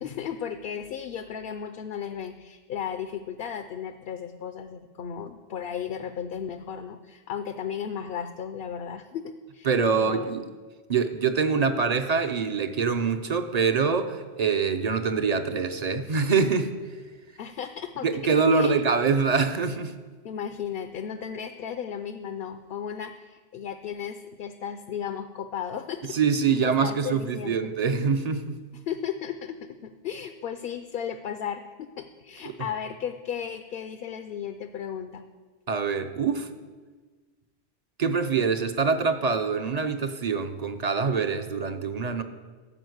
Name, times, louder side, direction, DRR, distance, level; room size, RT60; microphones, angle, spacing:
voice 1, 0.0-10.5 17.4-18.1 18.5-18.8 20.2-26.2 26.5-27.8 28.7-35.3, left 8 dB, 65° left, 8 dB, 0.7 m, -35 dB
voice 2, 9.7-10.5 10.9-16.7 18.0-19.9 26.1-28.6 32.5-32.6 35.7-36.5 38.0-42.2, right 5 dB, 45° right, 8 dB, 0.7 m, -24 dB
13.0 x 5.1 x 7.9 m, 1.4 s
omnidirectional pair, 1.1 m